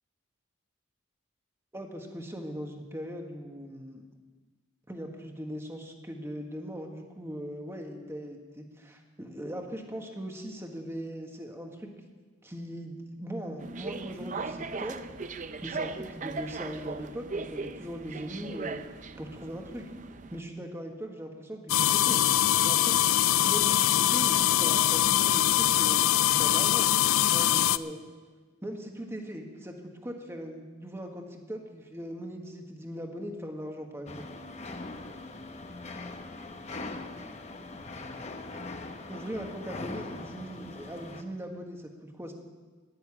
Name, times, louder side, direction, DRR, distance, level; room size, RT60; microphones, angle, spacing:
voice 1, 1.7-4.0 4.9-11.9 12.4-15.0 15.6-18.8 19.2-19.9 20.3-22.2 22.6-26.9 27.3-28.0 28.6-29.8 30.0-34.3 39.1-42.3, equal, 10° right, 3 dB, 1.4 m, -40 dB
sound 1, 13.6-20.4, right 4 dB, 35° right, 0.5 m, -38 dB
sound 2, 21.7-27.8, left 12 dB, 75° left, 0.4 m, -23 dB
sound 3, 34.1-41.2, left 2 dB, 30° left, 0.9 m, -41 dB
11.0 x 10.5 x 8.8 m, 1.4 s
head